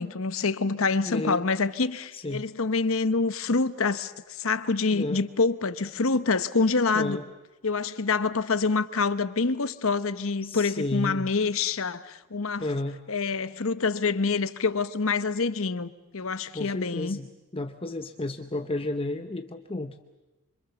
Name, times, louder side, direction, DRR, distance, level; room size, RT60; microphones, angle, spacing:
voice 1, 0.0-7.2 7.6-12.7 13.1-17.2, left 4 dB, 65° left, 0.9 m, -26 dB
voice 2, 1.0-1.5 2.1-2.4 4.9-5.2 6.9-7.2 10.4-11.3 12.6-13.0 16.5-17.3 17.5-20.0, left 2 dB, 25° left, 0.8 m, -32 dB
26.0 x 26.0 x 7.0 m
head